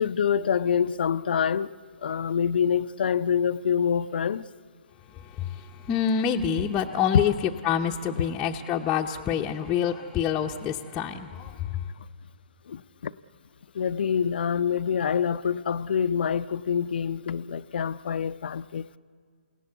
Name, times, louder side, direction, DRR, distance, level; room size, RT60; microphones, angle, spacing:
voice 1, 0.0-1.7 2.0-4.5 12.7-13.1 13.7-19.0, left 7 dB, 60° left, 0.6 m, -26 dB
voice 2, 5.1-11.8, left 8 dB, 15° left, 0.8 m, -27 dB
28.5 x 17.5 x 8.3 m
hypercardioid pair, 140°, 6 cm